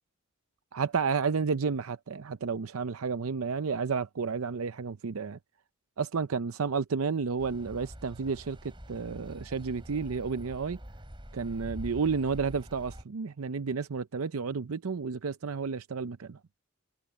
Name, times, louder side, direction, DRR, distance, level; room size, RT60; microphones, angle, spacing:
voice 1, 0.7-5.4 6.0-8.6 8.9-10.8 11.3-16.4, right 5 dB, 85° right, 0.6 m, -31 dB
sound 1, 7.4-13.0, equal, 25° right, 5.6 m, -45 dB
head